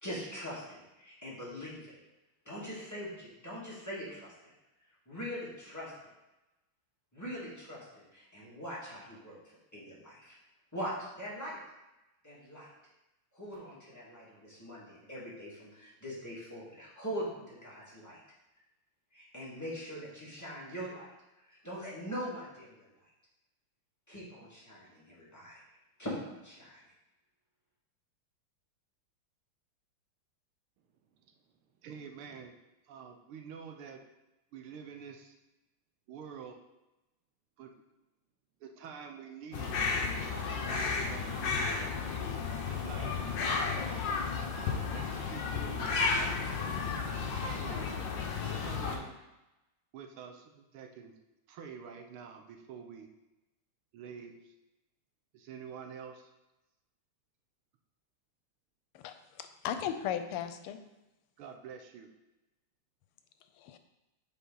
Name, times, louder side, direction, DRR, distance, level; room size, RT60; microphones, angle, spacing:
voice 1, 0.0-2.0 2.4-4.5 4.8-5.9 7.1-10.4 10.7-11.6 12.2-12.7 13.3-18.2 19.1-21.1 21.3-23.1 24.1-25.6 26.0-26.9, equal, 10° left, -8 dB, 1.8 m, -42 dB
voice 2, 31.8-32.5 32.9-34.0 34.5-35.4 36.1-36.6 37.6-37.7 38.6-39.8 40.7-42.2 42.7-44.0 44.6-46.9 47.4-48.2 48.5-49.1 49.9-51.2 51.5-53.1 53.9-54.5 55.3-56.3 61.4-62.1, right 7 dB, 80° right, 4 dB, 1.6 m, -47 dB
sound 1, 39.5-49.0, left 5 dB, 65° left, 1.4 m, -33 dB
voice 3, 58.9-60.8 63.6-63.8, left 9 dB, 90° left, 9 dB, 1.5 m, -36 dB
7.2 x 4.1 x 3.9 m, 0.99 s
omnidirectional pair, 2.4 m